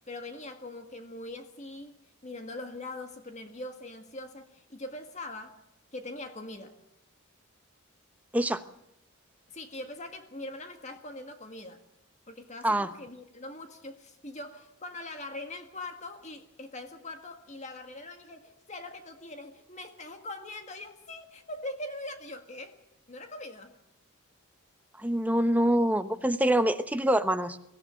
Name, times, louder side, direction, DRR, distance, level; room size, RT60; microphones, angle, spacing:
voice 1, 0.1-2.0 2.2-5.6 5.9-6.8 9.5-11.8 12.3-22.8 23.1-23.7, left 2 dB, 30° left, 6 dB, 1.8 m, -42 dB
voice 2, 25.0-27.6, right 1 dB, 5° right, 9 dB, 1.0 m, -25 dB
24.0 x 16.0 x 7.8 m, 0.84 s
head